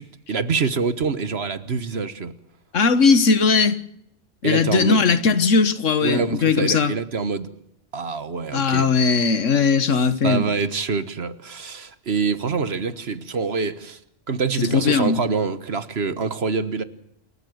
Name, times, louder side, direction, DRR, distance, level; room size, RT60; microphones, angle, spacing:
voice 1, 0.0-2.3 4.4-5.0 6.0-7.5 7.9-8.9 10.2-14.0 14.3-16.8, right 5 dB, 55° right, 1.5 m, -25 dB
voice 2, 2.7-3.8 4.4-6.9 8.5-10.5 14.6-15.2, left 5 dB, 85° left, 1.7 m, -19 dB
28.0 x 14.0 x 8.0 m
omnidirectional pair, 1.3 m